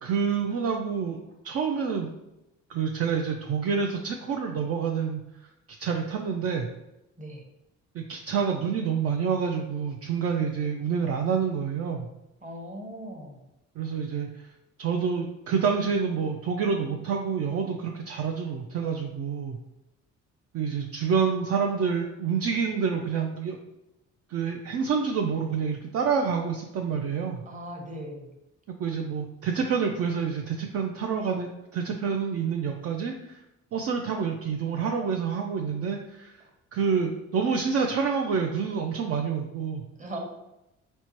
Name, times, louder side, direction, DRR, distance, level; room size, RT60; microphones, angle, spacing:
voice 1, 0.0-1.2 1.4-2.1 2.7-5.2 5.8-6.7 7.9-12.1 13.8-14.5 14.8-19.6 20.5-23.6 24.3-27.4 28.8-33.4 33.7-36.4 36.7-39.8, right 6 dB, 55° right, 2 dB, 0.4 m, -28 dB
voice 2, 12.4-13.4 27.5-28.3 40.0-40.2, equal, 25° right, 1 dB, 0.9 m, -39 dB
4.3 x 2.1 x 2.9 m, 0.91 s
cardioid pair, 90°, 30 cm